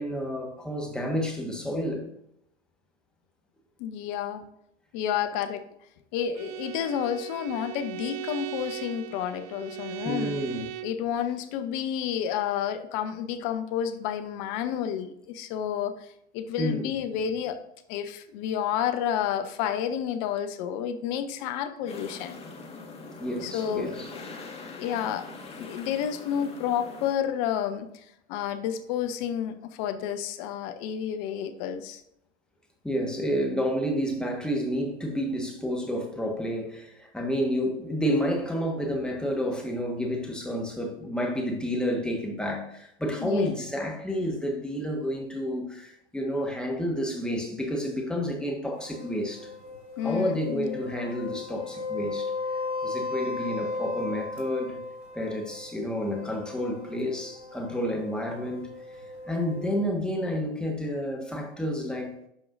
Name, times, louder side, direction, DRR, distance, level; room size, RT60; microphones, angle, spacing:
voice 1, 0.0-2.1 10.0-10.7 16.6-17.0 23.2-24.1 32.8-49.5 50.0-52.3 52.8-54.8 55.1-58.7 59.2-62.1, equal, ahead, 1.4 m, -30 dB
voice 2, 3.8-4.5 4.9-5.6 6.1-10.3 10.8-16.1 16.3-17.6 17.9-22.4 23.4-23.9 24.8-25.3 25.5-32.0 43.2-43.5 50.0-50.8, left 9 dB, 40° left, 0.8 m, -30 dB
Bowed string instrument, 6.3-11.0, right 14 dB, 35° right, 0.4 m, -38 dB
sound 1, 21.9-27.1, left 3 dB, 20° left, 1.6 m, -43 dB
sound 2, 48.7-59.8, left 3 dB, 75° right, 2.9 m, -36 dB
11.5 x 4.7 x 2.6 m
figure-of-eight pair, 95°, 34 cm